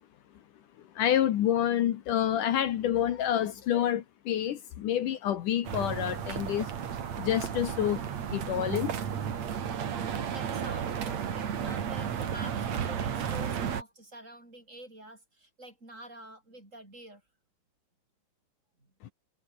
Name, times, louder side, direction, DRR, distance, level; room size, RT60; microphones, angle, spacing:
voice 1, 1.0-6.7 7.2-8.0 8.3-9.0 19.0-19.1, left 11 dB, 70° left, 2.8 m, -28 dB
sound 1, 5.6-13.8, right 8 dB, 55° right, 3.2 m, -33 dB
voice 2, 10.0-17.2 18.8-18.9, right 1 dB, 20° right, 5.9 m, -48 dB
omnidirectional pair, 4.0 m